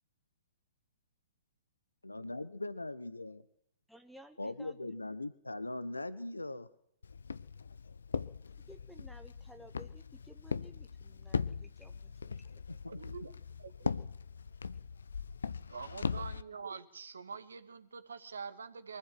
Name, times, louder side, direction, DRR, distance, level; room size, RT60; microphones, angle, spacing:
voice 1, 2.0-3.4 4.4-6.7 12.7-13.0, left 2 dB, 85° left, 14 dB, 1.2 m, -40 dB
voice 2, 3.9-4.9 8.6-12.5, equal, ahead, 7 dB, 0.8 m, -56 dB
Walk footsteps, 7.0-16.4, left 5 dB, 70° left, 0.8 m, -40 dB
voice 3, 12.9-14.0 15.7-19.0, right 5 dB, 70° right, 11 dB, 2.0 m, -45 dB
23.5 x 14.5 x 7.9 m, 0.73 s
figure-of-eight pair, 120°, 0 cm